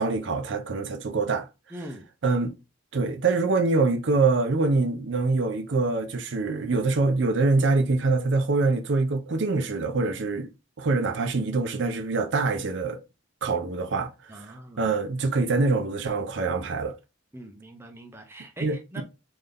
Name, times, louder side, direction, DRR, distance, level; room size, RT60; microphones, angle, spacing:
voice 1, 0.0-1.5 2.2-2.5 2.9-10.5 10.8-13.0 13.4-14.1 14.8-16.9 18.6-19.0, right 3 dB, 60° right, 0.5 m, -24 dB
voice 2, 1.7-2.0 14.3-14.9 17.3-19.0, right 1 dB, 10° right, 0.6 m, -42 dB
3.8 x 2.6 x 3.3 m
head